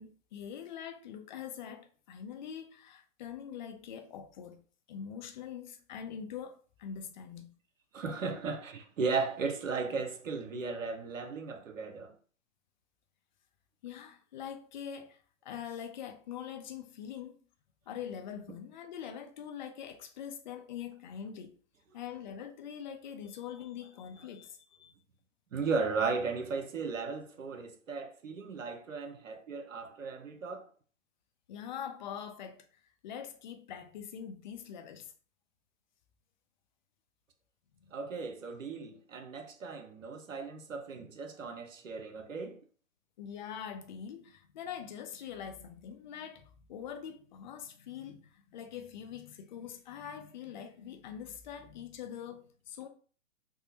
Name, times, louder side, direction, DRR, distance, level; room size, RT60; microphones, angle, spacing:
voice 1, 0.0-4.6 4.9-7.5 13.8-17.4 17.9-21.6 21.9-24.9 31.5-35.1 37.8-37.9 43.2-52.9, left 8 dB, 40° left, 0.5 m, -44 dB
voice 2, 7.9-12.2 25.5-30.7 37.9-42.6, right 4 dB, 80° right, 0.7 m, -36 dB
3.5 x 2.1 x 2.8 m
figure-of-eight pair, 125°, 38 cm